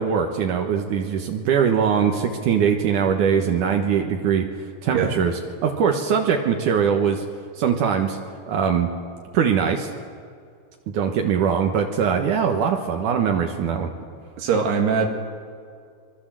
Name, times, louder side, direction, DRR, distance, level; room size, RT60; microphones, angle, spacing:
voice 1, 0.0-4.5 4.8-7.2 7.6-8.2 8.5-8.9 9.3-9.9 10.9-13.9, right 7 dB, 85° right, 3 dB, 1.8 m, -21 dB
voice 2, 14.4-15.1, right 6 dB, 65° right, 3 dB, 3.5 m, -21 dB
25.0 x 22.5 x 7.6 m, 2.2 s
omnidirectional pair, 5.7 m